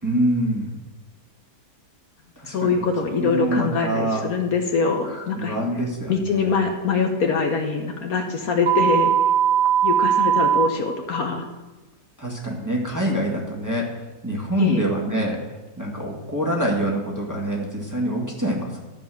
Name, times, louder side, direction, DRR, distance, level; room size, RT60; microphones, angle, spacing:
voice 1, 0.0-0.7 2.4-2.9 3.2-4.2 5.0-6.5 12.2-18.8, right 1 dB, 10° right, -3 dB, 1.8 m, -26 dB
voice 2, 2.4-5.6 6.1-9.1 9.8-11.5 14.6-14.8, left 4 dB, 60° left, 3 dB, 1.4 m, -23 dB
sound 1, 8.7-10.7, right 9 dB, 50° right, 1.0 m, -19 dB
12.5 x 5.2 x 7.8 m, 1.2 s
omnidirectional pair, 1.8 m